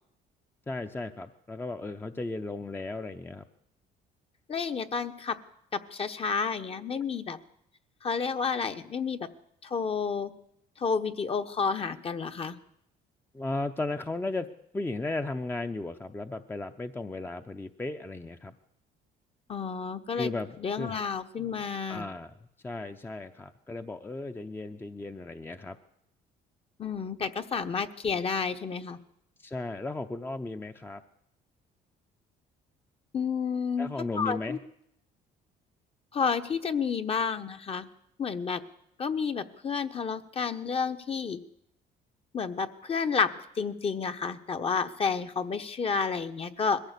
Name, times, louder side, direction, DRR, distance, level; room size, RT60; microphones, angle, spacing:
voice 1, 0.7-3.4 13.3-14.5 14.7-18.5 20.2-21.0 21.4-21.5 21.9-22.3 22.6-25.8 29.4-31.0 33.8-34.6, left 2 dB, 10° left, 7 dB, 0.7 m, -35 dB
voice 2, 4.5-5.4 5.7-7.4 8.0-9.3 9.6-10.3 10.8-12.6 19.5-20.3 20.6-22.1 26.8-29.0 33.1-34.6 36.1-37.9 38.2-38.6 39.0-41.4 42.3-46.8, left 5 dB, 35° left, 8 dB, 1.1 m, -30 dB
21.0 x 15.0 x 8.3 m, 0.77 s
cardioid pair, 110°, 17 cm